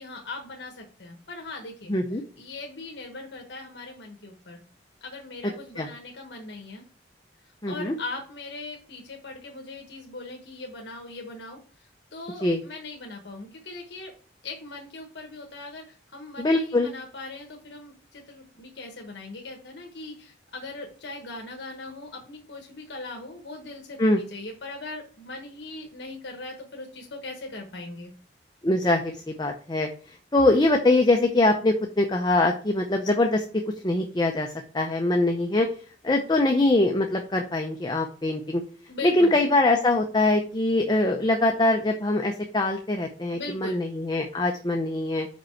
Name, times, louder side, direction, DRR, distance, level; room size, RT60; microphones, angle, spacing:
voice 1, 0.0-4.6 5.0-6.8 7.6-14.1 14.4-28.1 38.9-39.4 43.3-43.8, left 2 dB, 70° left, 2 dB, 1.2 m, -40 dB
voice 2, 1.9-2.2 5.8-5.9 7.6-8.0 12.4-12.6 16.4-16.9 24.0-24.2 28.6-29.9 30.3-33.4 33.8-34.5 34.7-35.7 36.0-38.6 39.0-45.3, left 2 dB, 25° left, 3 dB, 0.6 m, -23 dB
5.3 x 5.2 x 4.5 m, 0.41 s
head